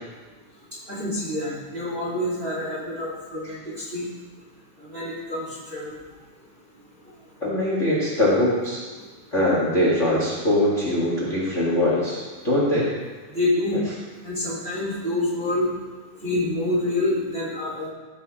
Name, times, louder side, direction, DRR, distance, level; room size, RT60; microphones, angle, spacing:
voice 1, 0.9-4.1 4.9-6.0 13.3-13.8 14.2-15.7 16.2-17.9, left 1 dB, 20° right, -6 dB, 2.4 m, -27 dB
voice 2, 7.4-8.8 9.3-12.9, left 1 dB, 25° left, -6 dB, 1.9 m, -22 dB
14.5 x 7.8 x 4.3 m, 1.3 s
omnidirectional pair, 3.7 m